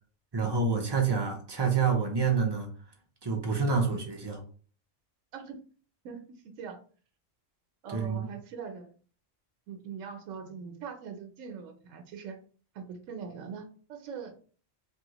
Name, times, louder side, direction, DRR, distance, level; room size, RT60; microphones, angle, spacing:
voice 1, 0.3-2.7 3.2-4.4 7.9-8.3, right 5 dB, 40° right, 0.3 m, -27 dB
voice 2, 5.3-5.6 6.0-6.2 6.4-6.8 7.8-8.9 9.7-12.4 12.7-14.3, right 6 dB, 85° right, 1.0 m, -42 dB
3.4 x 2.3 x 2.8 m
omnidirectional pair, 1.3 m